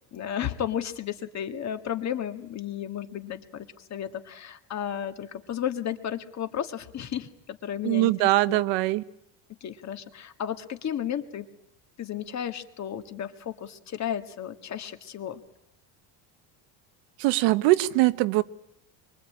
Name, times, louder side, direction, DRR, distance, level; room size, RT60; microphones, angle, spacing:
voice 1, 0.1-8.1 8.5-8.6 9.6-11.5 12.0-15.4, left 9 dB, 35° left, 8 dB, 1.9 m, -33 dB
voice 2, 7.8-9.0 17.2-18.4, right 18 dB, 80° right, 13 dB, 1.3 m, -22 dB
24.5 x 24.0 x 8.7 m, 0.84 s
cardioid pair, 145°, 44 cm